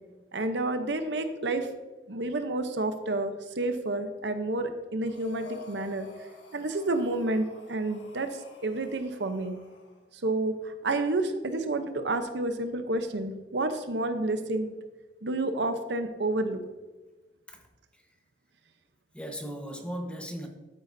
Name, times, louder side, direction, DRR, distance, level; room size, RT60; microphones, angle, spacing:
voice 1, 0.3-1.7 2.1-9.6 10.1-14.7 15.2-16.6, right 2 dB, 70° right, 8 dB, 0.8 m, -30 dB
Breathing, 5.1-10.0, left 5 dB, 85° left, 1.6 m, -49 dB
voice 2, 19.1-20.5, equal, 5° left, 3 dB, 1.2 m, -37 dB
12.0 x 9.5 x 2.7 m, 1.2 s
head